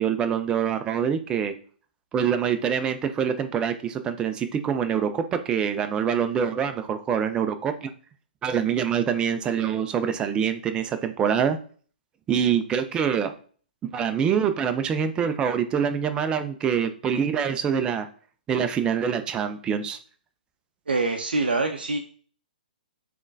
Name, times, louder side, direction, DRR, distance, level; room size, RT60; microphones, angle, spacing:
voice 1, 0.0-1.5 2.1-7.9 8.4-11.6 12.3-13.3 13.8-18.1 18.5-20.0, right 7 dB, 15° right, 8 dB, 0.3 m, -25 dB
voice 2, 20.9-22.0, right 3 dB, 80° right, 3 dB, 0.4 m, -25 dB
3.6 x 3.2 x 2.5 m, 0.43 s
figure-of-eight pair, 125°, 5 cm